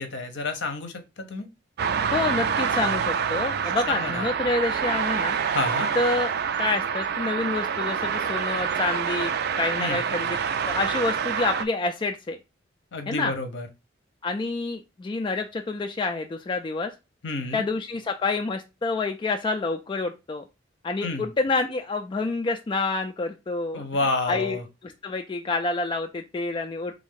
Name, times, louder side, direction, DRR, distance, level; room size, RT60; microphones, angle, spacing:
voice 1, 0.0-1.5 3.9-4.3 5.5-5.9 9.8-10.0 12.9-13.7 17.2-17.6 21.0-21.3 23.7-24.6, left 3 dB, 65° left, 7 dB, 0.8 m, -29 dB
sound 1, 1.8-11.6, right 7 dB, 60° right, 0.3 m, -27 dB
voice 2, 2.1-5.4 6.0-6.3 6.6-10.4 10.6-12.4 13.1-13.3 14.2-16.9 17.5-20.4 20.8-23.8 24.2-24.6 24.8-27.0, left 3 dB, 25° left, 4 dB, 0.3 m, -28 dB
3.5 x 2.5 x 3.6 m, 0.25 s
head